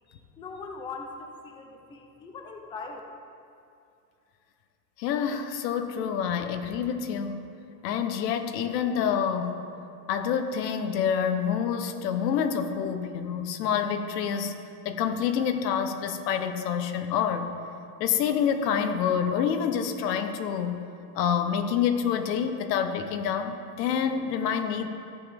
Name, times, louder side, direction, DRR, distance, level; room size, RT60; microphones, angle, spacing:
voice 1, 0.1-3.0, left 4 dB, 10° left, 2 dB, 0.4 m, -41 dB
voice 2, 5.0-7.5 7.8-9.7 10.1-14.5 14.8-17.5 18.0-20.8 21.1-24.9, left 7 dB, 85° left, 7 dB, 1.1 m, -27 dB
14.5 x 7.3 x 3.4 m, 2.6 s
supercardioid pair, 145°, 48 cm